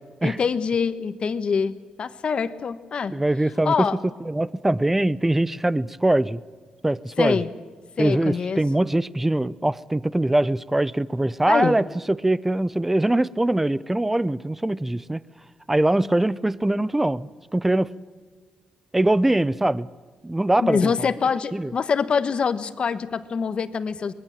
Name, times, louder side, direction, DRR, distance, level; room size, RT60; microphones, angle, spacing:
voice 1, 0.2-3.1 3.6-4.0 7.2-7.5 8.0-8.6 11.5-11.8 20.6-24.1, left 6 dB, 50° left, 11 dB, 1.3 m, -24 dB
voice 2, 3.1-3.9 4.2-6.4 6.8-7.4 8.0-15.2 15.7-17.9 18.9-19.9 20.2-21.1 21.5-21.7, right 1 dB, 10° right, 19 dB, 0.6 m, -22 dB
24.5 x 21.5 x 7.4 m, 1.5 s
cardioid pair, 105°, 2 cm